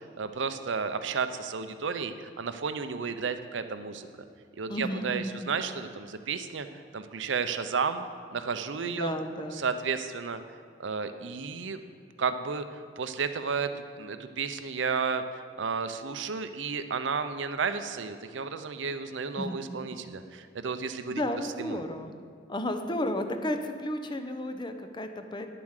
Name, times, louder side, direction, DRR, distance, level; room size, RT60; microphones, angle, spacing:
voice 1, 0.2-4.1 4.6-6.7 6.9-9.1 9.5-10.4 10.8-11.8 12.2-21.2 21.6-21.8, right 5 dB, 80° right, 10 dB, 0.6 m, -32 dB
voice 2, 4.7-5.4 8.8-9.6 19.4-19.6 21.1-22.1 22.5-25.5, left 1 dB, 25° left, 7 dB, 0.7 m, -33 dB
10.0 x 7.0 x 6.5 m, 2.2 s
head